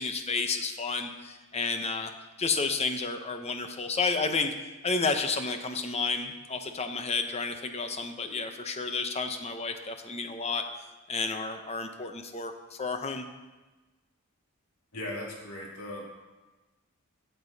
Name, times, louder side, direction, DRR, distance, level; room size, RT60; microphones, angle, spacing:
voice 1, 0.0-2.1 2.4-4.5 4.8-10.6 11.1-13.2, left 4 dB, 30° left, 6 dB, 0.8 m, -31 dB
voice 2, 14.9-16.0, left 1 dB, 80° left, -3 dB, 2.4 m, -38 dB
14.0 x 7.9 x 4.0 m, 1.2 s
head